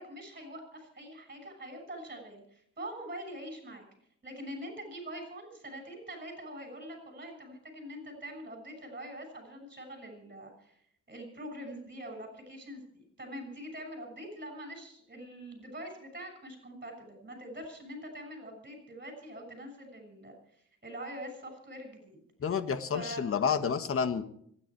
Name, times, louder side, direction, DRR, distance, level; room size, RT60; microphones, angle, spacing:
voice 1, 0.0-3.8 4.2-10.7 11.1-20.3 20.8-22.2 22.9-23.2, equal, 30° right, 4 dB, 6.6 m, -44 dB
voice 2, 22.4-24.2, left 6 dB, 45° left, 10 dB, 1.7 m, -29 dB
25.5 x 10.0 x 4.8 m, 0.66 s
cardioid pair, 90°, 30 cm